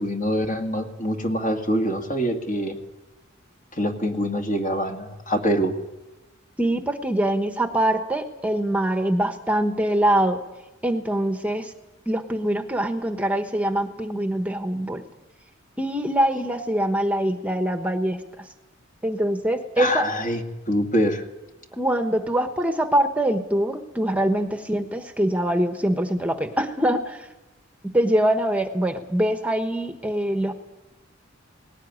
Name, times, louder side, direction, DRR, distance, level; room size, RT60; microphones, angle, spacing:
voice 1, 0.0-2.8 3.7-5.8 19.8-21.2, equal, 40° left, 3 dB, 2.1 m, -25 dB
voice 2, 6.6-10.4 10.8-11.7 12.1-15.0 15.8-18.5 19.0-20.1 21.7-27.3 27.8-30.5, right 1 dB, 5° right, 6 dB, 1.2 m, -23 dB
19.0 x 18.0 x 9.6 m, 1.1 s
head